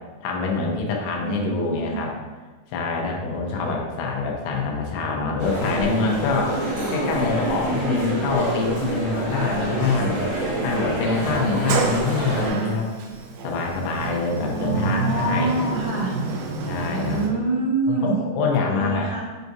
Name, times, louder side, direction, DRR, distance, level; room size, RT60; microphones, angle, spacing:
voice 1, 0.2-2.1 2.7-6.6 6.9-10.2 10.6-12.9 13.4-15.5 16.7-17.2 17.9-19.1, left 4 dB, 90° left, 0 dB, 3.2 m, -25 dB
voice 2, 1.1-1.9 3.5-3.7 6.7-7.0 11.5-11.7 14.3-16.2 16.9-18.2 18.7-19.2, right 3 dB, 70° left, -9 dB, 1.3 m, -26 dB
sound 1, 5.4-12.5, right 1 dB, 65° right, 0.7 m, -26 dB
Sliding door, 11.3-17.3, right 4 dB, 90° right, 2.1 m, -29 dB
8.0 x 4.6 x 2.7 m, 1.3 s
omnidirectional pair, 5.1 m